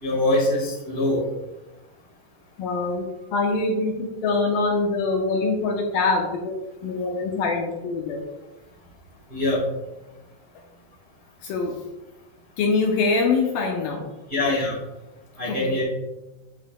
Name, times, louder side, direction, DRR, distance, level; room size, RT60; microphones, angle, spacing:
voice 1, 0.0-1.2 9.3-9.6 14.3-14.8 15.4-15.8, left 1 dB, 30° right, -5 dB, 1.1 m, -23 dB
voice 2, 2.6-6.6 6.8-8.2 11.4-11.8 12.6-14.1 15.5-15.7, left 3 dB, 75° left, 0 dB, 2.2 m, -24 dB
16.5 x 5.5 x 2.2 m, 1.1 s
omnidirectional pair, 4.6 m